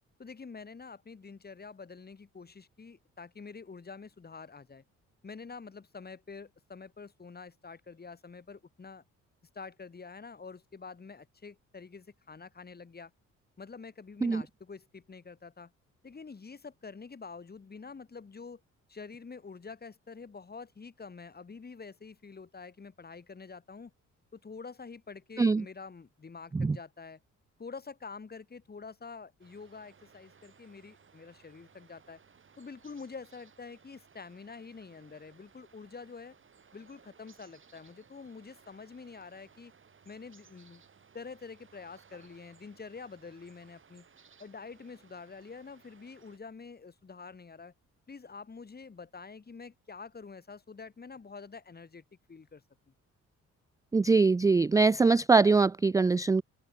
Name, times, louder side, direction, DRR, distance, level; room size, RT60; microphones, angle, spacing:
voice 1, 0.2-4.8 5.2-9.0 9.5-13.1 13.6-15.7 16.0-18.6 18.9-23.9 24.3-27.2 27.6-32.2 32.6-36.3 36.7-39.7 40.0-40.8 41.1-44.0 44.4-47.7 48.1-52.6, left 4 dB, 30° left, 6.0 m, -47 dB
sound 1, 29.4-46.4, right 6 dB, 40° right, 7.4 m, -61 dB
voice 2, 53.9-56.4, right 4 dB, 10° right, 0.3 m, -23 dB
open air
cardioid pair, 90°, 30 cm